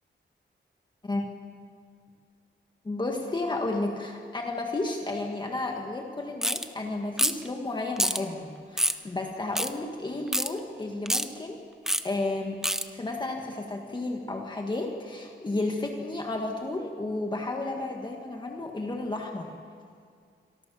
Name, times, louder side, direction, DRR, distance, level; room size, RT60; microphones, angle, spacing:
voice 1, 2.8-11.6 12.0-12.6 12.9-19.5, left 2 dB, 25° left, 1 dB, 1.6 m, -32 dB
sound 1, 6.4-6.7 7.2-7.5 8.0-8.2 8.8-9.0 9.6-9.7 10.3-10.5 11.1-11.3 11.9-12.0 12.6-12.8, equal, ahead, 0.8 m, -26 dB
27.5 x 23.5 x 6.9 m, 2.2 s
wide cardioid pair, 175°, 19 cm